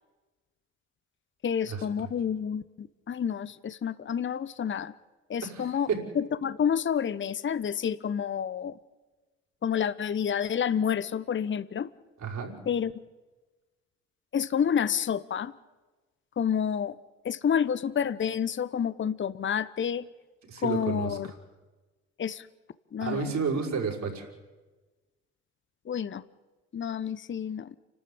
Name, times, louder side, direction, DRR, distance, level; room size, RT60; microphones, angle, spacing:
voice 1, 1.4-4.9 5.3-5.9 6.1-8.8 9.6-11.9 12.7-12.9 14.3-15.5 16.4-17.0 17.2-20.1 20.6-21.3 22.2-22.5 22.9-23.3 25.9-26.2 26.7-27.8, left 8 dB, 35° left, 16 dB, 0.9 m, -29 dB
voice 2, 5.4-6.0 12.2-12.5 20.5-21.3 23.0-24.3, right 5 dB, 50° right, 1 dB, 5.8 m, -31 dB
30.0 x 13.0 x 8.8 m, 1.2 s
hypercardioid pair, 45°, 34 cm